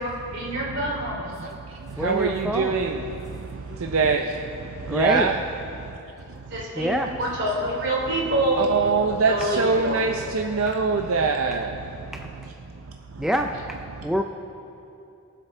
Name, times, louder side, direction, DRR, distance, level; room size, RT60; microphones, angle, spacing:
voice 1, 0.0-1.5 6.5-8.7 9.1-10.0, right 1 dB, 55° right, -3 dB, 2.8 m, -27 dB
voice 2, 0.5-5.4 5.6-6.0 6.3-6.6 8.6-13.3 13.9-14.1, right 4 dB, 75° right, 3 dB, 0.6 m, -26 dB
voice 3, 2.0-2.8 4.8-5.3 6.8-7.1 12.1-12.3 13.2-13.8 14.0-14.2, equal, ahead, 3 dB, 0.3 m, -26 dB
23.0 x 7.7 x 3.3 m, 2.7 s
head